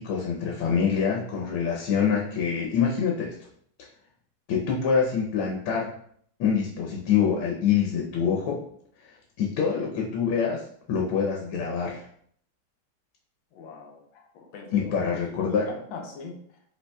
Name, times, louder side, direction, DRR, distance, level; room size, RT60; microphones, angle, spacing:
voice 1, 0.0-3.4 4.5-5.9 6.4-8.7 9.0-12.1 14.7-15.7, left 6 dB, 85° left, -1 dB, 1.7 m, -25 dB
voice 2, 13.5-16.6, left 4 dB, 70° left, 3 dB, 1.4 m, -41 dB
5.3 x 4.2 x 2.2 m, 0.64 s
omnidirectional pair, 2.4 m